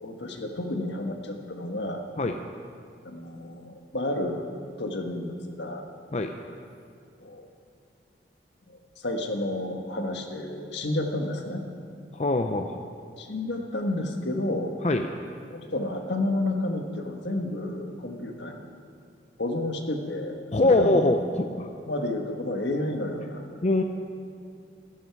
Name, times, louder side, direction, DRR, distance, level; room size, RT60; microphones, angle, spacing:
voice 1, 0.0-2.0 3.0-4.5 4.8-5.8 7.2-7.5 8.7-8.8 9.0-11.6 13.2-14.7 15.5-18.7 19.4-21.0 21.9-23.4, left 1 dB, 75° left, 4 dB, 1.4 m, -31 dB
voice 2, 12.1-12.7 14.8-15.1 20.5-21.7 23.6-23.8, left 2 dB, 40° left, 5 dB, 0.5 m, -23 dB
15.5 x 13.0 x 4.7 m, 2.4 s
head